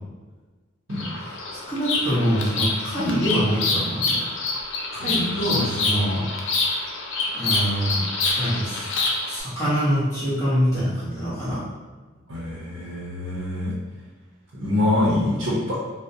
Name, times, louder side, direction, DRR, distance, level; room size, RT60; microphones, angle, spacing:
Bird vocalization bird call bird song, 0.9-9.4, left 3 dB, 75° left, 0.4 m, -26 dB
voice 1, 1.7-4.1 4.9-6.6 7.3-8.1 8.4-8.9 9.2-11.6, equal, 15° left, -11 dB, 0.9 m, -25 dB
voice 2, 5.0-5.4 12.3-13.7 14.6-15.8, left 1 dB, 75° right, -7 dB, 0.6 m, -25 dB
2.4 x 2.0 x 2.6 m, 1.3 s
head